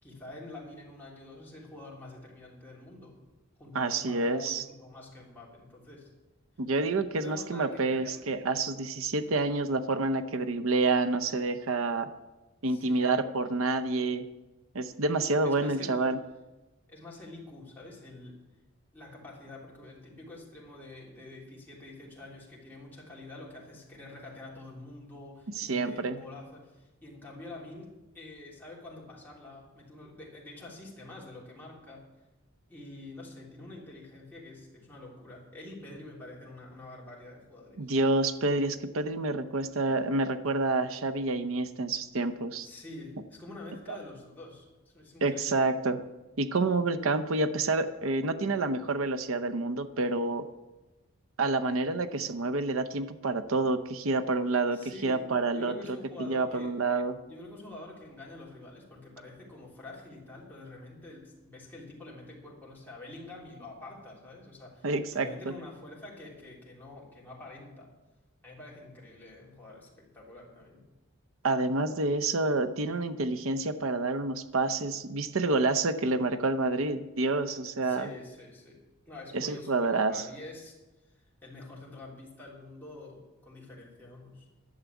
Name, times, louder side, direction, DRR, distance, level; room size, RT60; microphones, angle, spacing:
voice 1, 0.0-3.1 3.6-6.1 7.1-8.3 12.7-13.1 15.4-16.1 16.9-18.4 18.9-32.0 32.7-37.9 42.6-45.7 54.7-56.7 57.2-67.9 68.4-70.9 77.8-78.8 79.1-80.7 81.0-84.4, left 2 dB, 10° left, -5 dB, 3.3 m, -47 dB
voice 2, 3.7-4.6 6.6-12.1 12.6-14.3 14.7-16.2 25.5-26.2 37.8-42.7 45.2-46.0 46.4-50.5 51.4-55.7 56.2-57.2 64.8-65.5 71.4-78.1 79.3-80.2, right 3 dB, 75° right, 11 dB, 0.7 m, -28 dB
11.5 x 7.3 x 8.1 m, 1.1 s
head